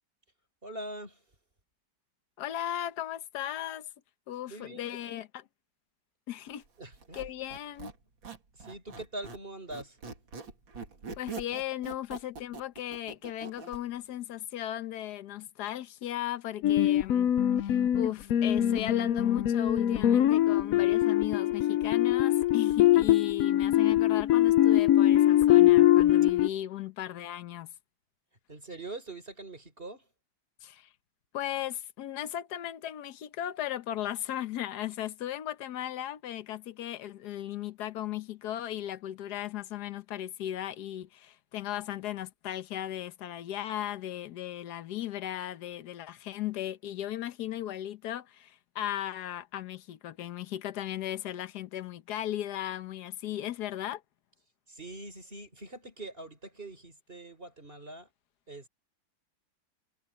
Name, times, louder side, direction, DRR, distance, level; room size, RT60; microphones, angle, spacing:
voice 1, 0.6-1.2 4.5-5.2 6.8-7.2 8.5-10.0 28.5-30.1 54.7-58.1 58.5-58.7, right 2 dB, 25° right, 4.9 m, -43 dB
voice 2, 2.4-3.9 4.3-5.4 6.3-6.6 7.1-7.9 11.2-17.3 17.6-27.7 30.6-30.9 31.3-54.0, left 12 dB, 60° left, 1.4 m, -36 dB
Squeak, 6.9-9.5 9.7-13.8, right 4 dB, 75° right, 3.4 m, -43 dB
sound 1, 16.6-26.5, left 12 dB, 75° left, 0.8 m, -23 dB
omnidirectional pair, 2.1 m